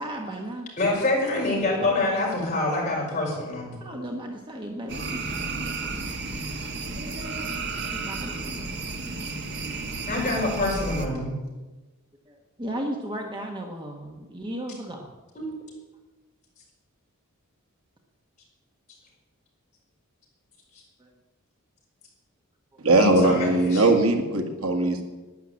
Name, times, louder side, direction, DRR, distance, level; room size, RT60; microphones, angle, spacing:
voice 1, 0.0-0.7 3.8-6.7 7.9-8.9 12.3-15.1 21.0-21.1, right 1 dB, 20° right, 2 dB, 1.3 m, -36 dB
voice 2, 0.8-3.8 10.1-11.3 15.3-15.5 23.0-23.9, left 2 dB, 35° left, -4 dB, 5.8 m, -26 dB
sound 1, 4.9-11.1, right 3 dB, 50° right, 1.5 m, -32 dB
voice 3, 22.8-25.0, right 2 dB, 80° right, 4 dB, 2.0 m, -20 dB
12.0 x 10.0 x 8.7 m, 1.2 s
head